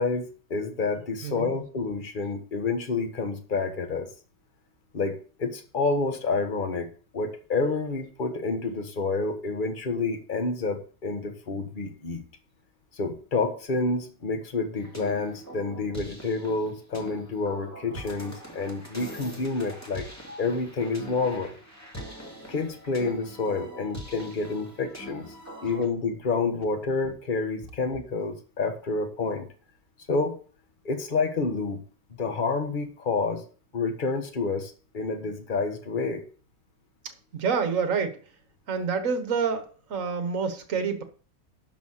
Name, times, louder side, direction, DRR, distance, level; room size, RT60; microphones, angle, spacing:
voice 1, 0.0-4.1 4.9-5.1 5.4-6.9 7.1-12.2 12.9-20.1 20.4-21.5 22.5-25.3 25.6-29.5 30.1-30.4 30.8-31.8 32.2-33.4 33.7-36.2, left 3 dB, 30° left, 1.4 m, -29 dB
voice 2, 1.2-1.6 37.3-38.2 38.7-41.0, right 5 dB, 50° right, 1.6 m, -27 dB
sound 1, 14.7-25.8, right 1 dB, 10° left, 2.3 m, -43 dB
11.5 x 4.6 x 6.5 m
omnidirectional pair, 1.9 m